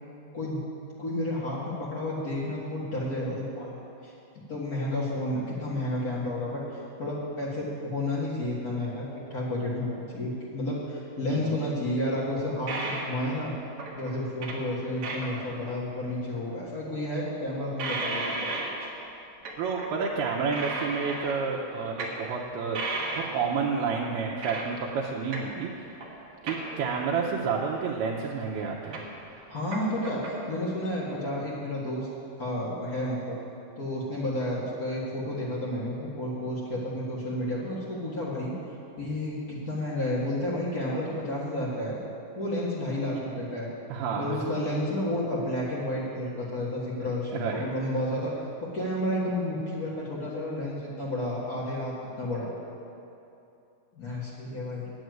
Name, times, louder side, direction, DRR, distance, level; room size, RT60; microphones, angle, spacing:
voice 1, 1.0-4.1 4.5-13.5 14.0-18.5 18.8-18.9 29.5-32.1 32.4-33.4 33.8-38.5 39.0-42.0 42.3-43.7 44.2-52.5 53.9-54.9, left 1 dB, 65° left, -7 dB, 0.9 m, -31 dB
sound 1, 12.2-12.3 12.7-13.1 13.8-14.6 15.0-15.4 16.0-16.1 17.8-19.1 19.4-20.0 20.3-21.5 22.0-22.2 22.7-23.3 24.4-24.8 25.2-25.6 26.0-26.2 26.5-27.1 28.2-28.3 28.6-30.4, right 2 dB, 55° right, 1.6 m, -34 dB
voice 2, 19.6-22.8 23.2-26.0 26.4-29.0 43.9-44.4 47.3-47.7, right 5 dB, 80° right, -3 dB, 2.7 m, -30 dB
10.0 x 7.8 x 9.3 m, 2.7 s
omnidirectional pair, 4.7 m